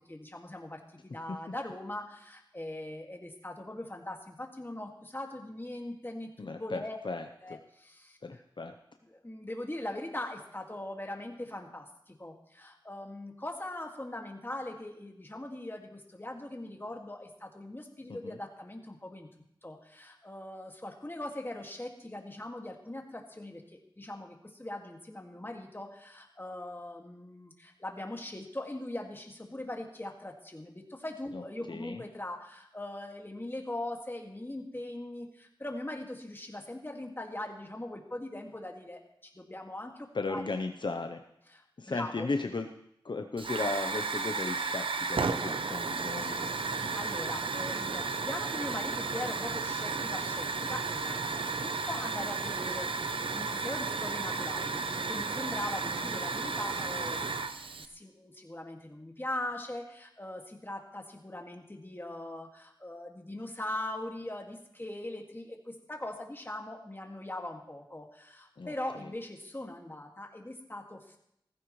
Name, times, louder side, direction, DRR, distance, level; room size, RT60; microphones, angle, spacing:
voice 1, 0.1-7.0 7.4-8.2 9.1-19.3 19.6-40.5 41.5-42.3 46.9-71.2, left 1 dB, 25° left, 2 dB, 2.0 m, -41 dB
voice 2, 6.4-7.6 8.2-8.7 18.1-18.4 31.3-32.0 40.1-41.2 41.8-42.7 43.0-46.9 68.6-68.7, left 3 dB, 65° left, 5 dB, 0.7 m, -36 dB
Hiss / Fire, 43.4-57.9, right 4 dB, 85° right, 0.7 m, -33 dB
16.5 x 14.5 x 3.2 m, 0.77 s
wide cardioid pair, 65°, 9 cm